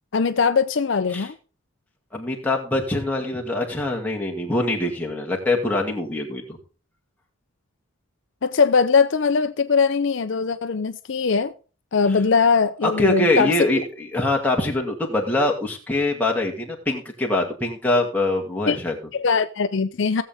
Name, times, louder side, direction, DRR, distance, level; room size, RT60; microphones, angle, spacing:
voice 1, 0.1-1.3 8.4-11.5 11.9-13.5 18.7-18.8 19.1-20.2, left 5 dB, 60° left, 0.5 m, -20 dB
voice 2, 2.1-6.6 12.8-19.0, left 2 dB, 10° left, 2.3 m, -23 dB
17.5 x 7.6 x 3.5 m
head